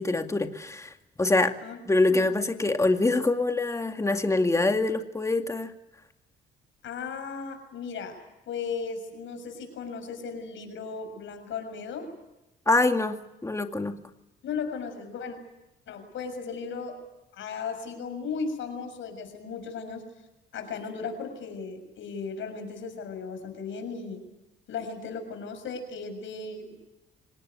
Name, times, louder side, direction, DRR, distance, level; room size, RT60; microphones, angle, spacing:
voice 1, 0.0-1.5 1.9-5.7 12.7-13.9, left 2 dB, 15° left, 6 dB, 2.2 m, -25 dB
voice 2, 2.1-2.4 6.8-12.1 14.4-15.4 15.9-17.0 17.3-20.0 20.5-24.3 24.7-26.8, left 5 dB, 75° left, 7 dB, 6.7 m, -36 dB
26.0 x 18.0 x 9.5 m, 0.95 s
cardioid pair, 90°, 20 cm